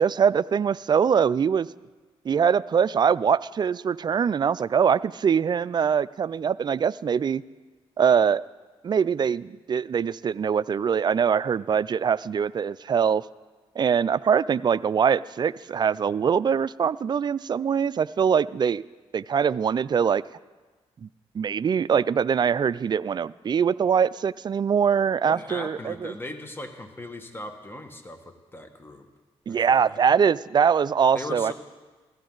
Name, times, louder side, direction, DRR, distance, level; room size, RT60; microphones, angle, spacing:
voice 1, 0.0-1.7 2.2-7.4 8.0-8.4 8.8-13.2 13.8-18.8 19.1-20.2 21.0-21.1 21.3-26.1 29.5-31.5, right 7 dB, 40° right, 18 dB, 0.3 m, -23 dB
voice 2, 25.2-29.0 29.5-30.0 31.1-31.5, left 2 dB, 20° left, 6 dB, 1.6 m, -39 dB
15.5 x 14.0 x 3.9 m, 1.3 s
cardioid pair, 70°, 11 cm